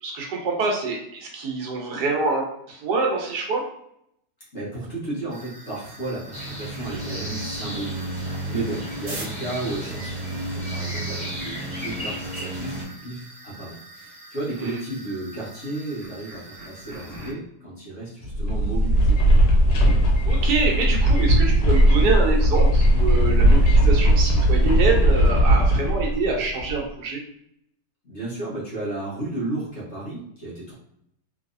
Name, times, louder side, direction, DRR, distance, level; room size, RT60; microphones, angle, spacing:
voice 1, 0.0-3.6 14.6-14.8 20.3-27.2, right 3 dB, 75° right, 0 dB, 1.3 m, -26 dB
voice 2, 4.5-10.2 10.5-19.2 28.0-30.7, right 2 dB, 45° left, -6 dB, 1.4 m, -33 dB
sound 1, 5.3-17.3, right 2 dB, 45° right, 1.0 m, -44 dB
sound 2, 6.3-12.8, right 1 dB, 20° left, 1.2 m, -32 dB
sound 3, 18.2-26.8, right 1 dB, 80° left, 1.3 m, -18 dB
3.3 x 3.0 x 2.5 m, 0.74 s
omnidirectional pair, 1.8 m